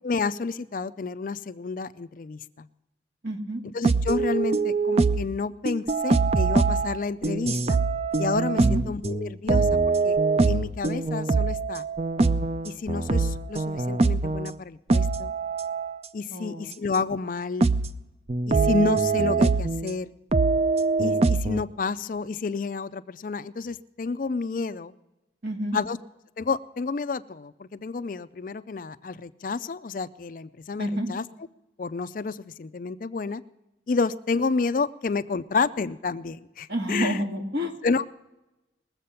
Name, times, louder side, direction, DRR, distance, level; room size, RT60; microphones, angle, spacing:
voice 1, 0.0-2.7 3.7-7.8 8.2-10.2 10.4-11.9 12.6-15.3 16.1-17.7 18.5-20.1 21.0-24.9 25.7-26.0 26.4-31.2 31.8-33.4 33.9-37.2 37.8-38.0, left 4 dB, 45° left, 14 dB, 0.4 m, -30 dB
voice 2, 3.2-3.6 8.6-8.8 16.3-16.7 25.4-25.8 30.8-31.1 36.7-37.8, equal, 65° right, 2 dB, 1.9 m, -29 dB
sound 1, 3.8-5.3 5.7-14.5 14.9-16.0 16.9-17.0 17.6-18.0 18.3-20.0 20.3-21.6, right 3 dB, 35° right, 0.4 m, -23 dB
20.5 x 7.6 x 5.6 m, 0.98 s
head